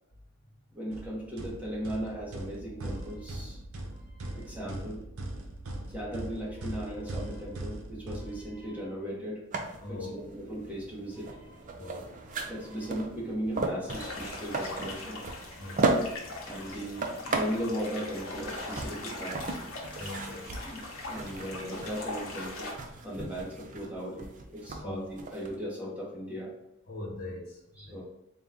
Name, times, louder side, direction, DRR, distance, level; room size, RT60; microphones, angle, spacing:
voice 1, 0.7-3.6 3.9-5.0 5.9-9.4 9.9-11.6 12.3-15.2 16.3-19.4 20.6-26.5 27.8-28.0, equal, 5° right, -6 dB, 1.0 m, -37 dB
sound 1, 0.9-8.9, right 1 dB, 75° right, 0.7 m, -40 dB
sound 2, 9.5-25.6, right 3 dB, 35° right, 0.4 m, -36 dB
voice 2, 9.8-10.2 11.8-12.1 15.6-15.8 20.0-20.6 23.2-23.3 24.8-25.0 26.9-28.0, left 2 dB, 45° left, -4 dB, 0.9 m, -41 dB
sound 3, 13.9-22.7, left 2 dB, 75° left, 0.9 m, -41 dB
4.0 x 2.3 x 3.6 m, 0.90 s
head